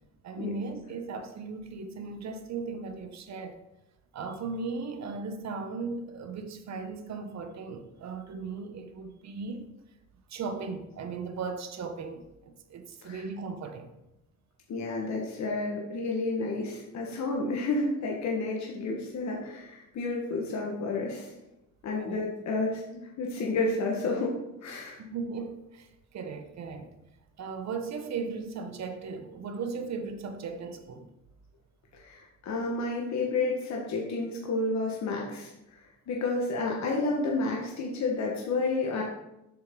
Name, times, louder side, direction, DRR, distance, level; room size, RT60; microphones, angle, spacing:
voice 1, 0.2-3.6 4.1-9.7 10.3-13.9 22.0-22.3 25.0-26.9 27.4-31.1, right 4 dB, 60° right, 1.1 m, -37 dB
voice 2, 14.7-21.3 21.8-24.3 24.6-25.0 31.9-39.0, left 3 dB, 65° left, 1.6 m, -31 dB
8.0 x 6.7 x 3.9 m
cardioid pair, 90°, 30 cm